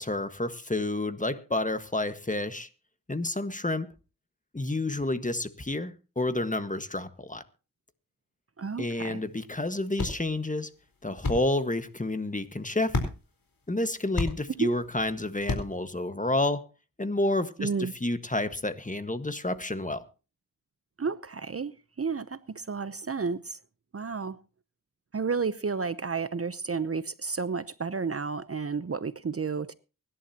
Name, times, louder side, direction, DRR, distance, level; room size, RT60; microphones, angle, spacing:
voice 1, 0.0-2.7 3.1-3.9 4.5-7.4 8.8-10.7 11.0-13.0 13.7-16.7 17.0-20.1, left 2 dB, 20° left, 1.5 m, -30 dB
voice 2, 8.6-9.2 14.6-14.8 17.6-17.9 21.0-23.6 23.9-24.4 25.1-29.7, right 5 dB, 40° right, 0.8 m, -31 dB
sound 1, 9.2-15.9, left 3 dB, 80° left, 4.4 m, -36 dB
24.0 x 11.5 x 2.9 m
cardioid pair, 50°, 34 cm